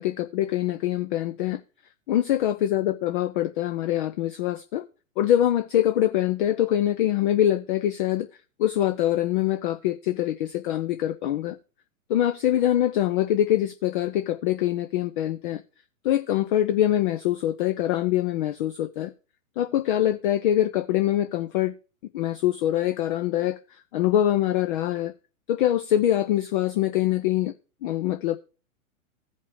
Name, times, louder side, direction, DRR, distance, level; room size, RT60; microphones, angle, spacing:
voice 1, 0.0-1.6 2.1-4.8 5.2-8.3 8.6-11.6 12.1-15.6 16.0-19.1 19.6-21.7 22.1-25.1 25.5-27.5 27.8-28.4, left 12 dB, 35° left, 0.6 m, -24 dB
16.0 x 5.4 x 3.2 m
figure-of-eight pair, 115°, 43 cm